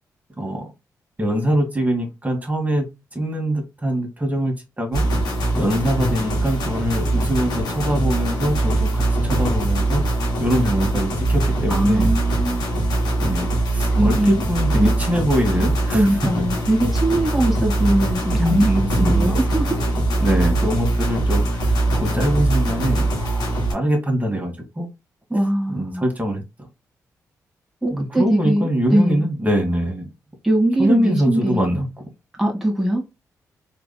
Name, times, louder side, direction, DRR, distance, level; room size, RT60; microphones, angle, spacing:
voice 1, 0.4-0.7 1.2-5.1 5.5-10.0 10.4-12.1 13.2-16.1 18.3-19.4 20.2-24.9 25.7-26.7 27.9-30.1 30.8-32.0, equal, 20° right, 1.7 m, -23 dB
sound 1, 4.9-23.7, right 2 dB, 75° left, 1.9 m, -21 dB
voice 2, 11.7-12.7 13.9-14.4 14.8-14.9 15.9-19.9 25.3-26.0 27.8-29.2 30.4-31.7 32.4-33.0, right 1 dB, ahead, 1.5 m, -21 dB
3.9 x 3.3 x 2.2 m
supercardioid pair, 55°, 7 cm